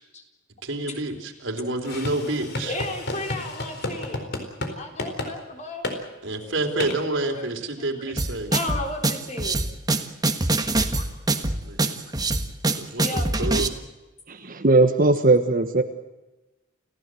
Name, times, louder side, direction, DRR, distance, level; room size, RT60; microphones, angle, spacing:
voice 1, 0.6-2.8 6.2-8.5 11.7-12.0 12.7-13.7, right 2 dB, 75° right, 4 dB, 3.7 m, -28 dB
sound 1, 1.8-4.7 5.0-5.3 5.8-6.0 6.8-7.0, left 2 dB, 60° left, 4.2 m, -31 dB
voice 2, 2.6-4.2 4.7-5.9 7.3-7.5 8.1-8.2 8.5-9.6 10.9-11.1 13.0-13.3, left 2 dB, 40° left, 3 dB, 4.0 m, -33 dB
sound 2, 8.2-13.7, right 2 dB, 20° right, 1.5 m, -24 dB
voice 3, 14.3-15.8, right 2 dB, 45° right, 6 dB, 1.4 m, -19 dB
29.5 x 16.0 x 7.8 m, 1.1 s
head